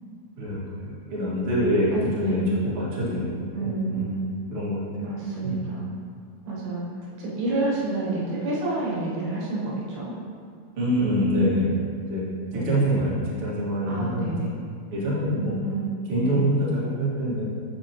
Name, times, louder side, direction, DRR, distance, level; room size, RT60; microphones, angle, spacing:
voice 1, 0.4-3.3 3.6-4.1 4.5-5.1 5.4-5.6 10.8-12.2 12.5-14.5 14.9-15.5 16.1-17.4, equal, 45° right, -9 dB, 2.6 m, -25 dB
voice 2, 1.9-2.5 3.5-4.3 5.0-5.9 6.4-6.8 7.2-10.1 12.5-13.0 13.9-14.5 15.3-15.9 16.2-16.5, right 2 dB, 80° right, -6 dB, 3.1 m, -29 dB
12.5 x 4.6 x 2.9 m, 2.3 s
omnidirectional pair, 4.1 m